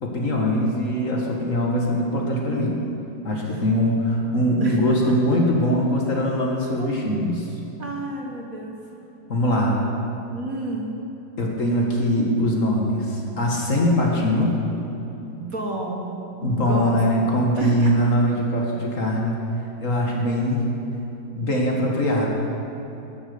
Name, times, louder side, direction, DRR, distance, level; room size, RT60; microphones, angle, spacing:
voice 1, 0.0-2.8 3.2-7.5 9.3-9.8 11.4-14.6 16.4-19.4 19.8-20.7 21.4-22.3, equal, 45° left, -1 dB, 1.8 m, -22 dB
voice 2, 6.8-7.2 7.8-8.7 10.3-10.9 15.3-16.3 16.6-17.0 17.3-17.9, right 2 dB, 50° right, 0 dB, 1.5 m, -32 dB
12.0 x 9.9 x 7.0 m, 2.9 s
omnidirectional pair, 2.2 m